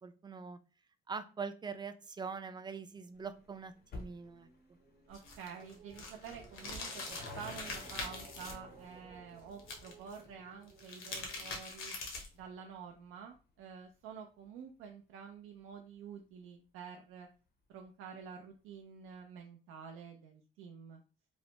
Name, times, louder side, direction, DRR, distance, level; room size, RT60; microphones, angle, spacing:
voice 1, 0.0-0.6 1.1-4.5, right 5 dB, 20° right, 9 dB, 0.4 m, -43 dB
sound 1, 2.2-11.5, right 4 dB, 55° right, 0.9 m, -58 dB
sound 2, 3.1-15.9 16.2-16.3 17.2-17.3 17.5-17.6 17.8-17.9, left 3 dB, 50° left, 0.6 m, -55 dB
sound 3, 5.1-8.5 9.6-10.2 10.7-12.4, left 3 dB, 80° left, 0.9 m, -43 dB
voice 2, 5.1-11.9 12.3-17.3 17.7-21.0, right 7 dB, 85° right, 2 dB, 0.4 m, -49 dB
3.1 x 2.0 x 2.8 m, 0.35 s
cardioid pair, 80°, 21 cm